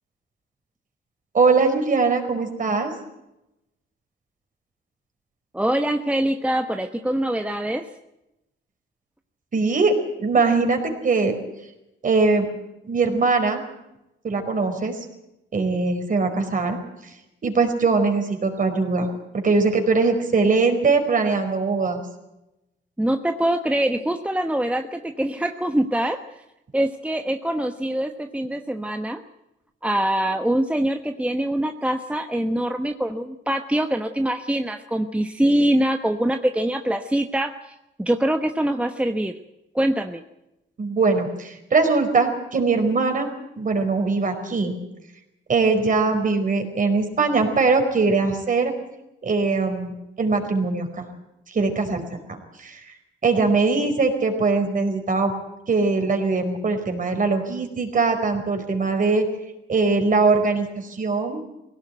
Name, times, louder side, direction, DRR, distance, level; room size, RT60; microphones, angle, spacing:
voice 1, 1.3-2.9 9.5-9.9 10.2-11.3 12.0-12.5 12.9-13.6 14.2-15.0 15.5-16.8 17.4-19.1 19.4-22.0 40.8-43.3 43.6-44.7 45.5-48.7 49.2-51.1 51.5-52.0 52.3-52.8 53.2-55.3 55.7-59.2 59.7-61.4, right 4 dB, 40° right, 5 dB, 4.8 m, -21 dB
voice 2, 5.5-7.9 23.0-26.2 26.7-29.2 29.8-39.4 39.7-40.2, right 1 dB, 5° right, 6 dB, 1.1 m, -24 dB
20.0 x 17.5 x 9.3 m, 0.91 s
cardioid pair, 90°, 20 cm